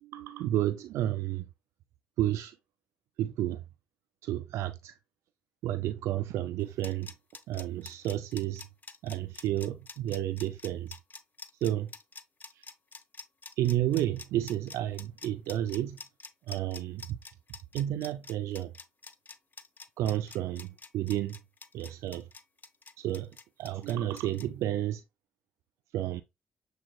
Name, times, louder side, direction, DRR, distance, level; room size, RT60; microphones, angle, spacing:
voice 1, 0.0-1.5 2.2-2.6 3.2-3.6 4.2-5.0 5.6-7.1 7.5-8.7 9.0-10.9 11.6-11.9 12.5-12.6 13.6-16.0 16.5-17.2 17.7-18.7 20.0-21.4 21.7-22.3 23.0-25.0 25.9-26.2, right 13 dB, 70° right, 0.4 m, -31 dB
sound 1, 6.6-24.5, left 4 dB, 35° left, 0.8 m, -47 dB
7.3 x 3.2 x 2.3 m
hypercardioid pair, 40°, 5 cm